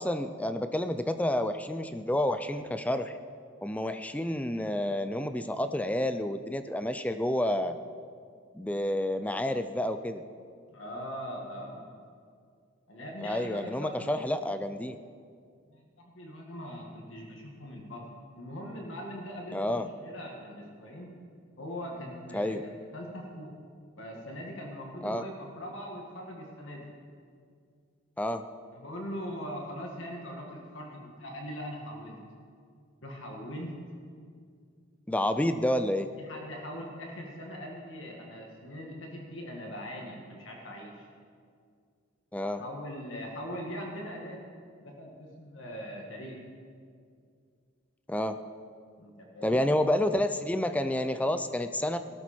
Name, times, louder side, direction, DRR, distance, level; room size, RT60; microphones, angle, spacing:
voice 1, 0.0-3.1 3.6-7.8 8.5-10.2 13.2-15.0 19.5-19.9 22.3-22.6 25.0-25.2 28.2-28.4 35.1-36.1 42.3-42.6 48.1-48.4 49.4-52.0, left 1 dB, 5° left, 9 dB, 0.4 m, -29 dB
voice 2, 10.7-11.8 12.9-14.2 15.7-18.0 18.3-21.1 21.6-23.5 24.0-26.8 28.7-32.2 33.0-33.7 36.2-41.1 42.6-44.4 44.8-46.4 49.0-49.7, equal, 65° left, 0 dB, 2.0 m, -41 dB
18.0 x 12.5 x 4.4 m, 2.2 s
head